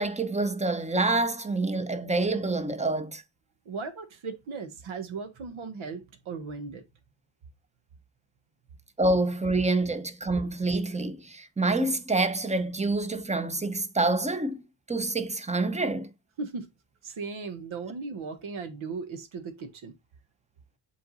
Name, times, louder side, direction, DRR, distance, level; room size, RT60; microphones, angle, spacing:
voice 1, 0.0-3.2 9.0-14.6 14.9-16.1, right 2 dB, 15° right, 0.8 m, -27 dB
voice 2, 3.6-6.8 16.4-16.7 17.0-19.9, right 4 dB, 80° right, 1.5 m, -37 dB
7.7 x 3.8 x 4.0 m
cardioid pair, 110°, 48 cm